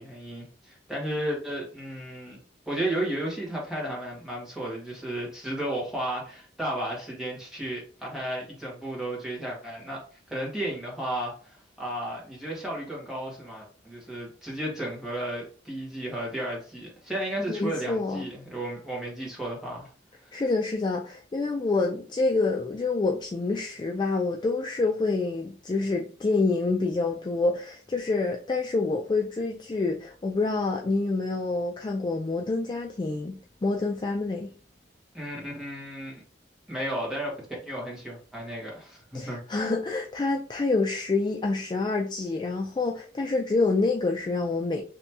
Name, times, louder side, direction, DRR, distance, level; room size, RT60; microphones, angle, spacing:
voice 1, 0.0-2.4 2.7-10.0 10.3-19.9 20.2-20.4 35.1-36.2 36.7-37.3 37.7-39.4, right 1 dB, 5° right, 1.4 m, -33 dB
voice 2, 17.5-18.2 20.3-34.5 39.1-44.8, left 3 dB, 25° left, 0.3 m, -27 dB
3.0 x 2.9 x 3.4 m
head